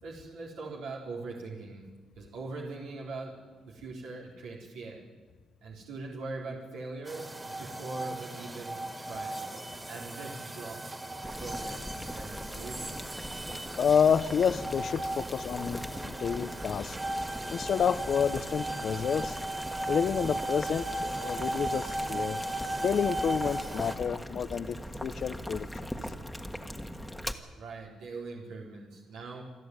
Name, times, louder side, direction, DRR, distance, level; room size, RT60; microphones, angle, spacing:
voice 1, 0.0-1.8 2.2-3.4 3.6-5.0 5.6-9.4 9.9-11.0 11.4-13.1 27.5-29.4, right 3 dB, 90° right, -2 dB, 4.0 m, -41 dB
sound 1, 7.1-24.0, right 1 dB, 15° right, 2.4 m, -37 dB
Boiling, 11.2-27.3, equal, 5° left, 1.6 m, -41 dB
voice 2, 13.8-17.0 17.5-19.4 19.9-22.4 22.8-24.8 25.0-25.7, left 7 dB, 55° left, 15 dB, 0.8 m, -29 dB
28.0 x 11.0 x 9.5 m, 1.4 s
cardioid pair, 90°, 0 cm